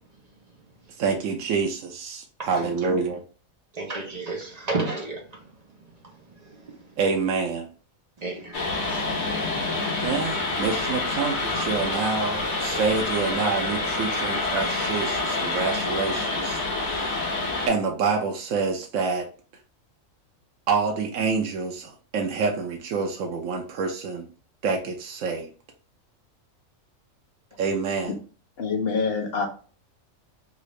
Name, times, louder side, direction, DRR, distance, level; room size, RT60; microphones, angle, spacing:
voice 1, 1.0-3.2 7.0-7.7 10.0-17.3 17.7-19.3 20.7-24.3 24.6-25.5 27.6-28.2, right 5 dB, 80° right, 1.1 m, -27 dB
voice 2, 2.4-2.9 3.7-5.9 6.3-6.9 8.2-9.5, right 3 dB, 35° right, 0.8 m, -34 dB
sound 1, 8.5-17.7, left 3 dB, 85° left, 1.2 m, -27 dB
voice 3, 28.6-29.5, left 5 dB, 55° left, 1.0 m, -25 dB
3.6 x 2.5 x 3.1 m
omnidirectional pair, 1.4 m